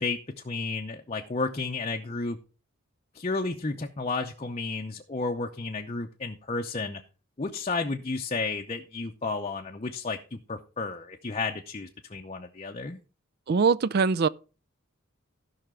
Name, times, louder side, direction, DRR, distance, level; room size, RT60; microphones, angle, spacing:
voice 1, 0.0-2.4 3.1-7.0 7.4-13.0, left 3 dB, 30° left, 0.6 m, -32 dB
voice 2, 13.5-14.3, right 5 dB, 50° right, 0.4 m, -22 dB
15.5 x 5.7 x 3.7 m
head